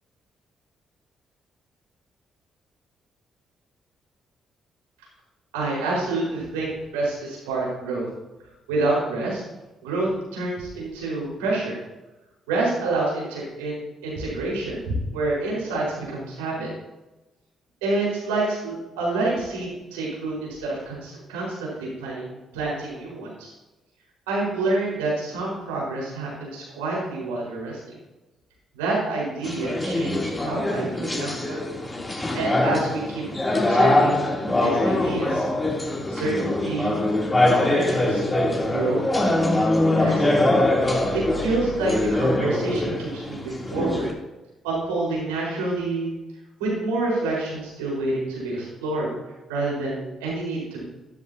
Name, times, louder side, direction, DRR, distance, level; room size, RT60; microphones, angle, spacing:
voice 1, 5.5-8.1 8.7-9.4 9.8-11.8 12.5-14.8 15.1-16.7 17.8-23.5 24.3-27.8 28.7-31.6 32.3-35.5 36.1-37.0 37.5-38.3 38.7-39.0 39.9-40.3 41.1-44.1 44.6-46.1 46.6-49.1 49.5-50.9, right 2 dB, 80° right, -5 dB, 4.7 m, -28 dB
sound 1, 29.4-44.1, left 1 dB, 25° left, 3.0 m, -23 dB
13.5 x 12.5 x 2.8 m, 1.0 s
hypercardioid pair, 45°, 0 cm